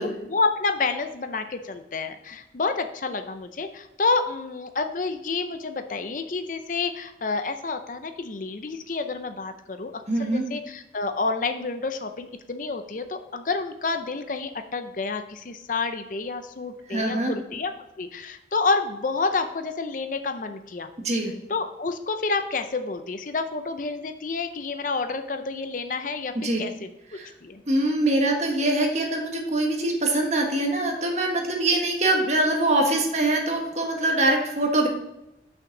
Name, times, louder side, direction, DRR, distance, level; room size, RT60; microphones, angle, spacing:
voice 1, 0.0-17.7 18.0-20.9 21.5-26.9 27.4-27.6, left 4 dB, 45° left, 8 dB, 0.6 m, -29 dB
voice 2, 10.1-10.4 16.9-17.3 21.0-21.3 26.3-26.6 27.1-27.3 27.7-34.9, right 1 dB, 40° right, 1 dB, 1.5 m, -23 dB
6.5 x 5.9 x 5.9 m, 0.90 s
head